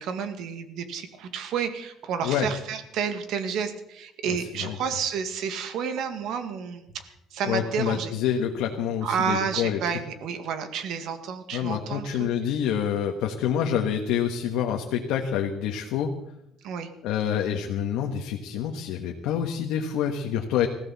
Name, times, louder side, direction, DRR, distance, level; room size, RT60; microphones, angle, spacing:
voice 1, 0.0-7.0 7.3-8.1 9.0-12.3 16.6-16.9, right 7 dB, 65° right, 8 dB, 1.9 m, -30 dB
voice 2, 7.4-9.8 11.5-16.1 17.0-20.7, left 9 dB, 85° left, 2 dB, 1.4 m, -27 dB
20.5 x 15.5 x 4.2 m, 0.81 s
cardioid pair, 155°, 0 cm